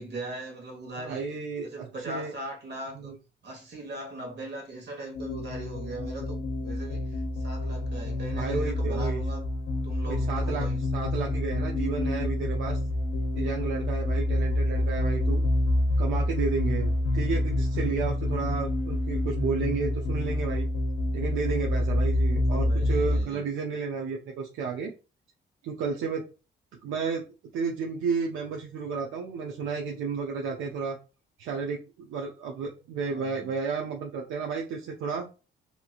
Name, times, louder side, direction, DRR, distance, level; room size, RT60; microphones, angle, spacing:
voice 1, 0.0-1.2 1.6-3.1 3.4-9.5 9.8-10.8 22.3-23.4 33.1-33.6, right 1 dB, 55° right, 1.3 m, -40 dB
voice 2, 1.0-2.3 2.9-3.1 8.3-9.2 10.0-12.8 13.3-15.4 16.0-20.7 21.1-24.9 25.6-26.3 26.8-27.3 27.5-31.0 31.4-35.3, right 5 dB, 85° right, 0.5 m, -32 dB
sound 1, 5.1-23.2, left 1 dB, 75° left, 0.6 m, -27 dB
2.8 x 2.8 x 2.4 m
cardioid pair, 90°, 20 cm